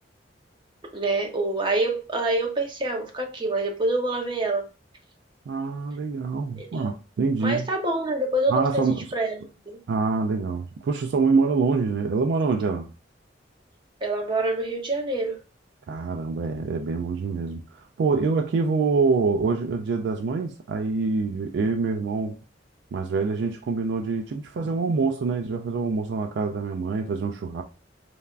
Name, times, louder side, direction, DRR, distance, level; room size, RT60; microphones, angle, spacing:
voice 1, 0.9-4.6 6.6-6.9 7.4-8.8 9.1-9.3 9.7-9.8 14.0-15.4, right 2 dB, 25° right, 0.7 m, -26 dB
voice 2, 5.5-7.7 8.5-9.1 9.9-12.9 15.9-22.4 22.9-27.6, right 4 dB, 70° right, 0.3 m, -25 dB
3.3 x 2.2 x 2.4 m
head